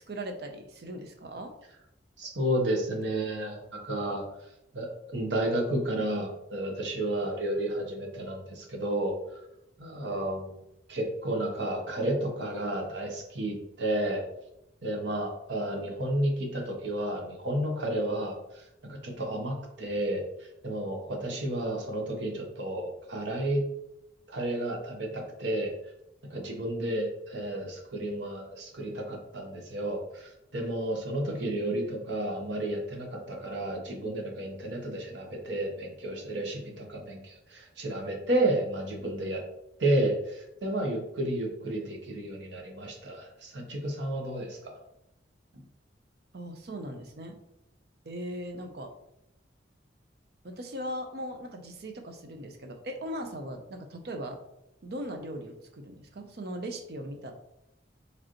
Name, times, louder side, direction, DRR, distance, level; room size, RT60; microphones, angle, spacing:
voice 1, 0.1-1.5 31.6-31.7 46.3-47.4 48.0-48.9 50.4-54.4 54.8-57.3, right 1 dB, 55° right, 5 dB, 0.6 m, -39 dB
voice 2, 2.2-4.2 4.7-9.1 9.8-10.6 10.9-14.2 14.8-23.6 24.3-25.7 26.3-39.4 39.8-44.7 45.5-45.6, right 1 dB, 70° right, 1 dB, 0.9 m, -31 dB
4.9 x 3.3 x 3.0 m, 0.86 s
head